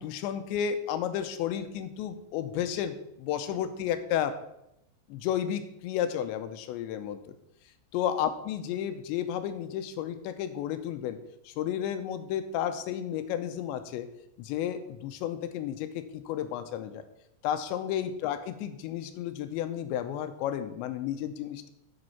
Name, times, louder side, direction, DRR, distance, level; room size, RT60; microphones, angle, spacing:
voice 1, 0.0-4.4 5.1-7.2 7.9-14.1 14.4-17.0 17.4-21.7, left 10 dB, 85° left, 10 dB, 3.0 m, -32 dB
8.0 x 7.9 x 5.6 m, 0.82 s
omnidirectional pair, 5.1 m